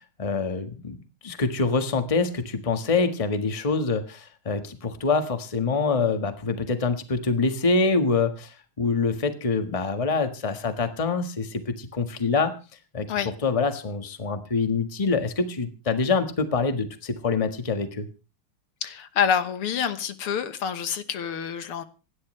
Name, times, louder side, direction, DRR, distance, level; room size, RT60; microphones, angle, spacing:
voice 1, 0.2-1.0 1.2-12.5 12.9-13.1 13.4-18.1, left 4 dB, 20° left, 1.3 m, -25 dB
voice 2, 18.8-21.8, left 8 dB, 80° left, 2.2 m, -27 dB
27.0 x 11.5 x 3.3 m
omnidirectional pair, 2.4 m